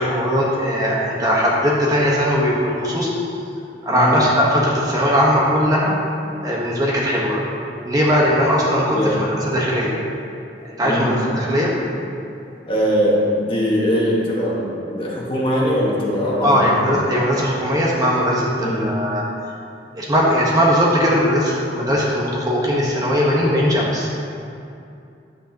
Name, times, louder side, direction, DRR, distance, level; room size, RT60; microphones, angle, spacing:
voice 1, 0.0-3.1 3.8-5.9 6.4-7.4 7.8-10.0 10.8-11.7 16.4-19.2 19.9-24.1, equal, 20° right, -4 dB, 1.2 m, -19 dB
voice 2, 10.8-11.2 12.7-16.7 18.6-18.9, equal, 30° left, -5 dB, 1.6 m, -21 dB
10.0 x 8.5 x 2.9 m, 2.6 s
head